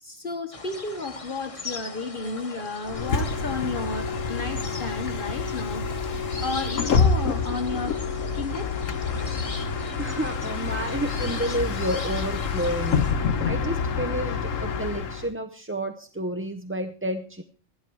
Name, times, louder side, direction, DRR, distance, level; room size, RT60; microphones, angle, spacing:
voice 1, 0.0-5.9 6.4-8.0 8.3-8.7, left 3 dB, 45° left, 8 dB, 1.1 m, -32 dB
sound 1, 0.5-13.1, left 3 dB, 30° left, 1.2 m, -40 dB
Bus, 2.9-15.3, left 5 dB, 85° left, 1.4 m, -27 dB
voice 2, 10.0-13.1 13.4-17.4, right 1 dB, 15° right, 7 dB, 0.6 m, -30 dB
13.5 x 11.5 x 4.6 m, 0.38 s
omnidirectional pair, 1.3 m